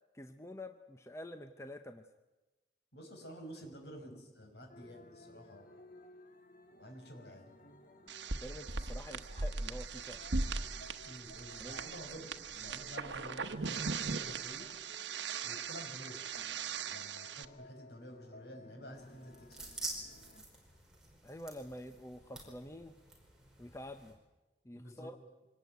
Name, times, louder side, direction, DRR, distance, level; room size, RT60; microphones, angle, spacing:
voice 1, 0.1-2.1 8.4-10.2 11.6-11.8 21.2-23.0 23.6-24.2 24.6-25.2, left 1 dB, 15° left, 8 dB, 0.8 m, -47 dB
voice 2, 2.9-5.7 6.8-7.5 11.0-14.7 15.4-16.3 16.9-19.7 24.8-25.1, equal, 65° left, 3 dB, 6.0 m, -50 dB
sound 1, 4.7-20.4, left 1 dB, 50° left, 1.9 m, -58 dB
sound 2, 8.1-17.4, right 4 dB, 80° right, 1.2 m, -39 dB
sound 3, 18.9-24.1, right 2 dB, 5° right, 5.1 m, -48 dB
25.0 x 19.0 x 9.4 m, 1.1 s
head